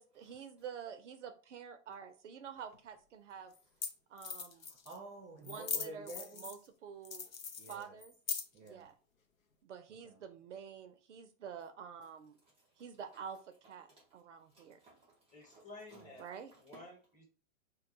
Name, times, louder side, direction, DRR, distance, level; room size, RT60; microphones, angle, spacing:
voice 1, 0.0-3.5 4.1-4.7 5.4-7.3 7.7-8.1 8.6-8.9 9.6-12.4 12.8-14.8 16.2-16.5, right 7 dB, 65° right, 9 dB, 0.5 m, -48 dB
sound 1, 2.7-2.8 3.6-3.7 3.8-3.9 4.2-5.0 5.4-6.7 7.0-8.7, left 6 dB, 85° left, 0.6 m, -40 dB
voice 2, 4.5-6.5 7.6-8.0 8.5-8.9 10.0-10.2 13.9-14.0 14.5-16.2 16.5-16.8, right 2 dB, 15° right, -2 dB, 0.6 m, -52 dB
voice 3, 15.3-16.3 16.6-17.2, left 2 dB, 20° left, 0 dB, 1.1 m, -52 dB
2.3 x 2.2 x 3.9 m, 0.38 s
figure-of-eight pair, 105°, 40 cm